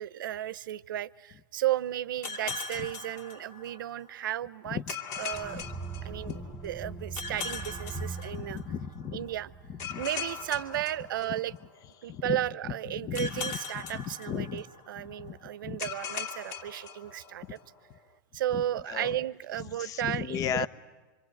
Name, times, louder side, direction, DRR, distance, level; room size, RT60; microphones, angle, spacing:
voice 1, 0.0-4.8 5.2-5.7 6.0-8.6 9.1-9.5 10.0-11.5 12.0-17.6 18.3-20.7, right 12 dB, 80° right, 19 dB, 0.8 m, -34 dB
sound 1, 2.2-4.0 4.9-6.6 7.2-8.9 9.8-11.8 13.1-14.9 15.8-17.6, left 5 dB, 55° left, 2.6 m, -39 dB
sound 2, 5.3-11.3, right 4 dB, 5° right, 1.2 m, -42 dB
voice 2, 8.3-9.3 9.7-10.0 12.1-12.4 12.9-13.4 13.9-14.6 15.0-15.3 15.6-15.8 18.5-18.6 18.9-19.2 19.8-20.7, left 8 dB, 30° left, 16 dB, 0.8 m, -35 dB
25.5 x 25.0 x 9.2 m, 1.2 s
hypercardioid pair, 130°, 11 cm